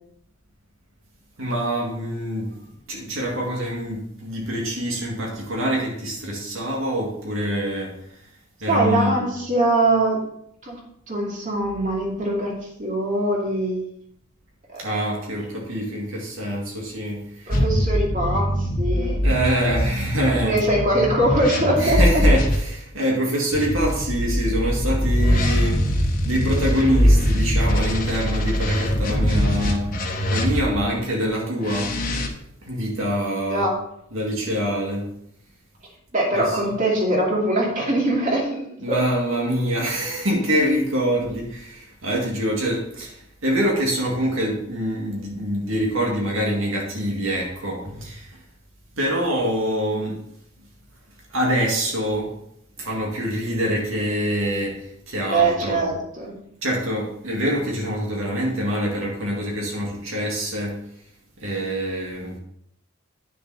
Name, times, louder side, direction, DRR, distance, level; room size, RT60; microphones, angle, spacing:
voice 1, 1.4-2.5 2.9-8.0 8.6-9.3 14.8-17.5 19.2-20.6 21.8-25.8 26.2-29.9 30.3-31.9 32.6-33.7 34.1-35.1 36.3-36.6 38.8-43.2 43.4-48.3 49.0-50.2 51.3-52.3 52.8-55.9 56.6-60.8 61.4-62.4, equal, 70° right, -1 dB, 2.1 m, -25 dB
voice 2, 8.7-10.2 10.6-10.8 11.1-12.5 12.8-13.8 14.7-14.9 17.5-19.2 20.4-22.0 33.5-33.7 36.1-38.6 38.9-39.0 55.2-56.3, right 1 dB, 35° right, -2 dB, 2.5 m, -22 dB
sound 1, 17.5-22.6 23.5-30.9 31.6-32.3, equal, 40° left, 1.3 m, -22 dB
9.6 x 7.0 x 4.1 m, 0.73 s
head